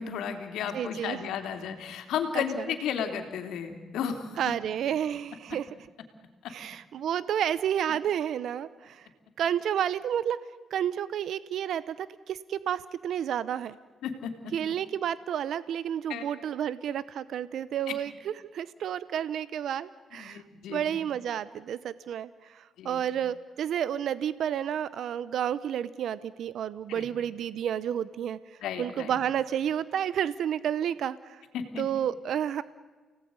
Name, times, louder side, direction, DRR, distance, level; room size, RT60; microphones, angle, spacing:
voice 1, 0.0-4.4 14.0-14.5 16.1-16.2 20.2-20.8 22.8-23.0 26.9-27.1 28.6-29.1 31.5-31.8, left 8 dB, 90° left, 6 dB, 3.2 m, -33 dB
voice 2, 0.7-1.3 2.3-2.6 4.4-5.7 6.5-9.1 9.4-10.4 10.7-13.8 14.5-20.4 20.7-28.4 28.8-31.4 31.8-32.6, right 9 dB, 75° right, 17 dB, 0.8 m, -31 dB
29.5 x 18.0 x 9.6 m, 1.4 s
cardioid pair, 95°, 0 cm